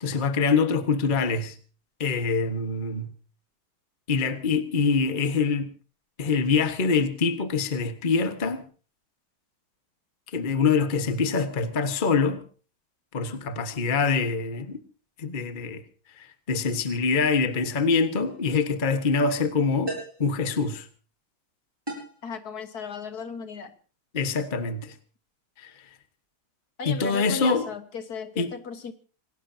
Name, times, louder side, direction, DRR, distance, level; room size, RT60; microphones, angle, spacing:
voice 1, 0.0-1.6 2.0-3.1 4.1-5.7 6.2-8.6 10.3-12.4 13.1-14.8 15.2-15.8 16.2-20.9 24.1-24.9 25.6-25.7 26.8-27.6 28.4-28.5, left 4 dB, 25° left, 1.3 m, -25 dB
sound 1, 18.2-18.5 19.9-20.3 21.9-22.2, right 2 dB, 10° right, 8.0 m, -35 dB
voice 2, 22.2-23.7 26.8-28.9, left 6 dB, 50° left, 1.8 m, -35 dB
27.0 x 18.5 x 2.8 m
omnidirectional pair, 2.3 m